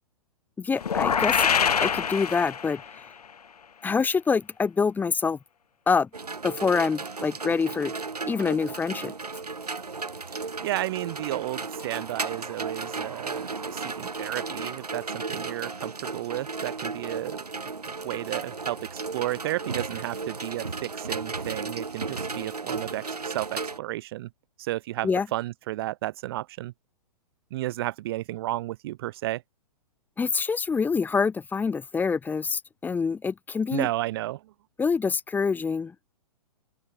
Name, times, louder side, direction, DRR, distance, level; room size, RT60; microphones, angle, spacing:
voice 1, 0.6-1.5 1.8-2.8 3.8-5.4 5.9-6.1 6.4-7.9 8.3-9.1 25.0-25.3 30.2-33.9 34.8-35.9, left 5 dB, 10° left, 1.2 m, -26 dB
sound 1, 0.8-3.0, left 7 dB, 75° left, 0.5 m, -24 dB
sound 2, 6.1-23.8, right 4 dB, 80° right, 2.7 m, -35 dB
voice 2, 10.6-17.4 18.0-24.3 24.6-26.7 27.5-29.4 33.7-34.4, right 16 dB, 40° right, 0.7 m, -32 dB
open air
figure-of-eight pair, 115°, 20 cm